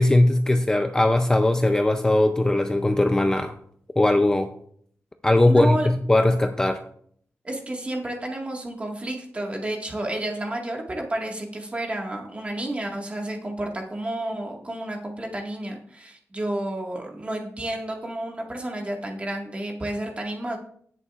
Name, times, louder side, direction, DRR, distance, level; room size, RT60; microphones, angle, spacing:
voice 1, 0.0-3.5 4.0-4.5 5.2-6.8, left 1 dB, 15° left, 6 dB, 0.5 m, -19 dB
voice 2, 5.5-5.9 7.4-20.6, right 1 dB, 25° right, 0 dB, 1.7 m, -31 dB
19.0 x 6.8 x 2.4 m, 0.62 s
wide cardioid pair, 175°, 5 cm